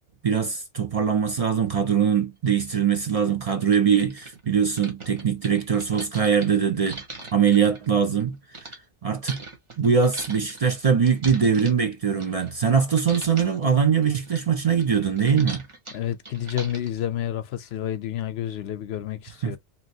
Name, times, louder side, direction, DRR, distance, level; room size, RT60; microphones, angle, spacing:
voice 1, 0.2-7.0 7.3-8.4 9.0-9.4 9.8-15.6 19.4-19.6, right 7 dB, 45° right, 0.5 m, -22 dB
sound 1, 2.5-2.6 3.2-3.3 3.5-8.8 9.3-12.7 13.0-13.6 14.0-17.0, right 2 dB, 25° right, 1.0 m, -41 dB
voice 2, 15.9-19.6, left 11 dB, 65° left, 0.8 m, -29 dB
3.1 x 2.8 x 2.6 m
omnidirectional pair, 1.2 m